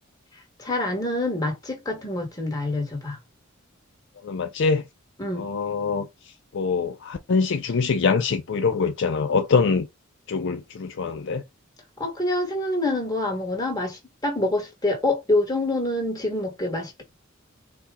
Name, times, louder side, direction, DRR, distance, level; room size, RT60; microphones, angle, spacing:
voice 1, 0.6-3.2 5.2-5.5 12.0-17.0, left 2 dB, 20° left, 1.4 m, -26 dB
voice 2, 4.2-4.9 5.3-6.1 6.5-9.9 10.3-11.4, left 5 dB, 60° left, 0.4 m, -24 dB
4.2 x 2.2 x 3.6 m
head